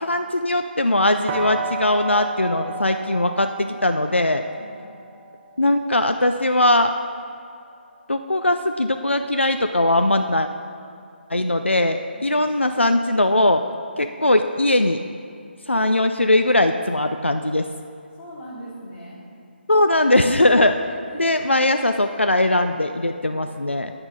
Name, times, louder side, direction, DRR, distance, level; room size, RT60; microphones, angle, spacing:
voice 1, 0.0-4.4 5.6-6.9 8.1-10.5 11.3-13.6 14.0-15.0 15.7-17.6 19.7-20.8 21.2-23.9, left 1 dB, 90° left, 8 dB, 0.5 m, -20 dB
sound 1, 1.3-7.1, right 2 dB, 20° right, 0.9 m, -33 dB
voice 2, 18.2-19.2 21.1-21.6 23.2-23.4, equal, 15° left, -8 dB, 2.5 m, -41 dB
13.5 x 9.7 x 3.8 m, 2.4 s
figure-of-eight pair, 145°, 6 cm